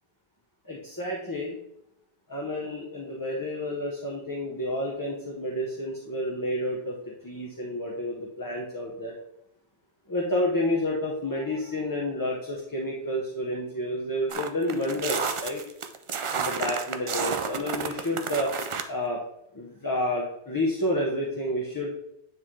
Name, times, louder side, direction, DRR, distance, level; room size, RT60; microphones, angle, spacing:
voice 1, 0.6-1.6 2.3-7.0 7.2-9.1 10.1-15.6 16.3-18.5 18.9-19.2 19.5-21.9, left 1 dB, 20° left, -2 dB, 0.8 m, -30 dB
sound 1, 14.3-18.8, right 5 dB, 55° right, 0.3 m, -31 dB
9.2 x 3.2 x 3.7 m, 0.77 s
omnidirectional pair, 1.1 m